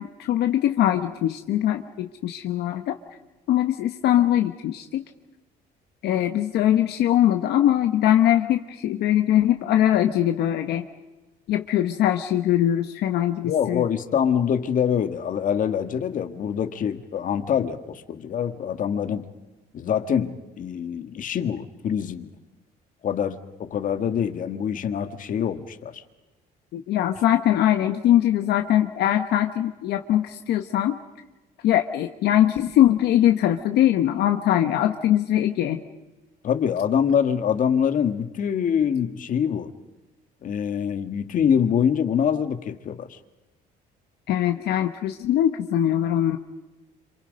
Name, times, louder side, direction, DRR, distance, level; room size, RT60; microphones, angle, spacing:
voice 1, 0.0-3.0 3.5-5.0 6.0-10.8 11.5-13.8 26.7-31.0 31.6-35.8 44.3-46.4, left 12 dB, 75° left, 6 dB, 1.2 m, -21 dB
voice 2, 13.4-19.3 19.7-22.3 23.0-25.9 36.4-39.7 40.4-43.2, left 8 dB, 50° left, 8 dB, 1.7 m, -25 dB
27.5 x 27.0 x 5.4 m, 1.1 s
cardioid pair, 110°, 17 cm